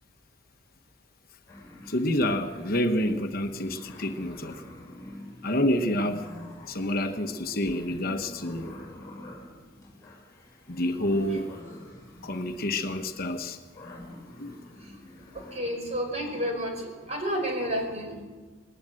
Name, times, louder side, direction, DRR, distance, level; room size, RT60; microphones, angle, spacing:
sound 1, 1.5-16.8, left 1 dB, 15° left, 7.1 m, -47 dB
voice 1, 1.9-4.6 5.4-6.3 6.7-8.7 10.7-11.5 12.2-13.6 14.4-14.5, left 1 dB, 45° left, 6 dB, 1.1 m, -28 dB
voice 2, 15.3-18.2, equal, 30° right, 1 dB, 5.4 m, -31 dB
20.0 x 18.5 x 7.7 m, 1.4 s
head